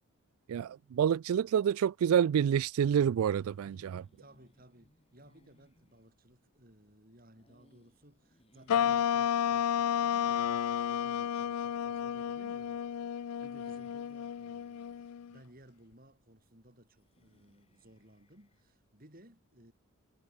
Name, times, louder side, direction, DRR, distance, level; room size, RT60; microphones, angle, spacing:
voice 1, 0.5-4.0, right 8 dB, 75° right, 0.3 m, -28 dB
sound 1, 3.0-18.8, equal, 25° left, 7.6 m, -69 dB
voice 2, 4.2-19.7, right 1 dB, 40° right, 5.6 m, -59 dB
sound 2, 8.7-15.4, left 9 dB, 85° left, 0.4 m, -32 dB
head